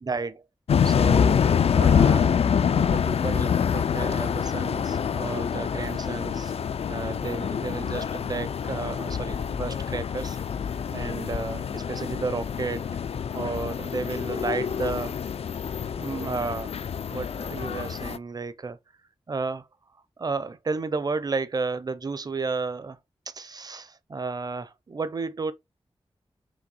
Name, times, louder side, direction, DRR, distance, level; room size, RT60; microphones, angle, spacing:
voice 1, 0.0-0.4 0.8-1.4 1.7-2.4 2.8-6.5 6.9-10.4 10.9-13.0 13.3-15.2 16.0-16.7 17.1-18.8 19.3-19.7 20.2-23.0 23.3-25.5, right 4 dB, 40° right, 0.6 m, -32 dB
sound 1, 0.7-18.2, left 7 dB, 80° left, 0.4 m, -26 dB
5.0 x 3.5 x 5.5 m
wide cardioid pair, 105°, 10 cm